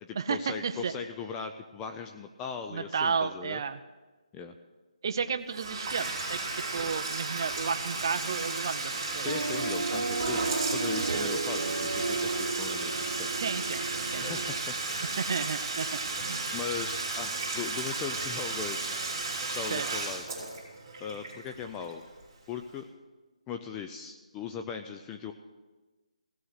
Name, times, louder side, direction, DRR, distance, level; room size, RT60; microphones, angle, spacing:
voice 1, 0.0-3.6 4.3-4.5 9.2-13.3 14.2-15.0 16.5-18.9 19.5-20.2 21.0-22.0 22.5-22.9 23.5-25.3, left 6 dB, 10° left, 5 dB, 0.3 m, -39 dB
voice 2, 2.7-3.8 5.0-6.4 6.7-9.3 11.1-11.3 13.3-14.5 15.2-16.6 19.7-19.9, right 6 dB, 35° right, 8 dB, 0.6 m, -33 dB
Bathtub (filling or washing), 5.5-22.2, right 3 dB, 20° right, 3.3 m, -34 dB
sound 1, 9.3-14.6, right 3 dB, 90° right, 1.1 m, -33 dB
16.5 x 6.3 x 9.6 m, 1.2 s
hypercardioid pair, 170°, 4 cm